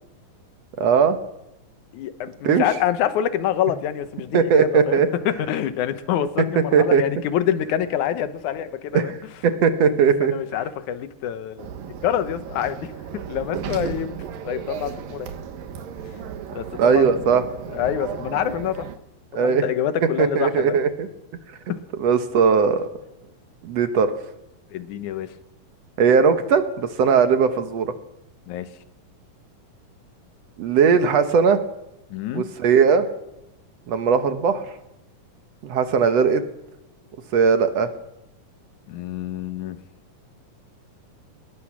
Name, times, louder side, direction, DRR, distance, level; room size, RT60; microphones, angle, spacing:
voice 1, 0.8-1.2 2.4-2.6 4.3-5.1 6.7-7.0 8.9-9.2 9.4-10.3 16.8-17.4 19.3-19.7 20.2-21.1 22.0-22.9 23.6-24.1 26.0-27.9 30.6-31.6 32.3-33.0 33.9-34.6 35.6-36.4 37.3-37.9, right 6 dB, 60° right, 9 dB, 1.9 m, -18 dB
voice 2, 1.9-9.1 10.0-11.7 12.0-14.1 14.5-15.3 16.5-17.2 17.7-18.8 19.3-20.8 21.7-21.8 24.7-25.3 28.5-28.7 32.1-32.5 38.9-39.8, left 10 dB, 70° left, 11 dB, 2.3 m, -26 dB
sound 1, 11.6-19.0, right 8 dB, 90° right, 3.1 m, -35 dB
20.5 x 20.0 x 6.2 m, 0.88 s
omnidirectional pair, 3.9 m